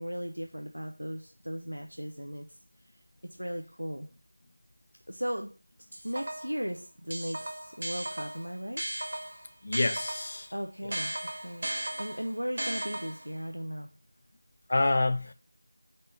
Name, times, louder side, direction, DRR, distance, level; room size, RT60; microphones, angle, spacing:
voice 1, 0.0-2.6 3.2-4.1 5.1-5.5 6.0-8.8 10.5-11.7 12.0-13.9, equal, 80° right, 0.8 m, -37 dB
sound 1, 5.9-6.6 7.1-10.4 10.9-13.4, right 1 dB, 40° right, 0.9 m, -36 dB
voice 2, 9.6-10.5 10.8-10.9 14.7-15.3, left 2 dB, 25° left, 0.4 m, -27 dB
5.3 x 4.3 x 5.4 m
figure-of-eight pair, 175°, 0 cm